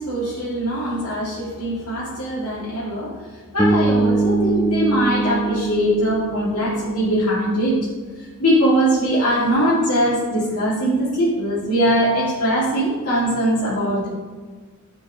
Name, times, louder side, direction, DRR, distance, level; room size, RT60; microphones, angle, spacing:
voice 1, 0.0-7.8 8.2-14.1, equal, 85° left, -9 dB, 1.4 m, -21 dB
Bass guitar, 3.6-7.7, right 3 dB, 5° left, 0.3 m, -22 dB
10.5 x 3.8 x 2.6 m, 1.4 s
head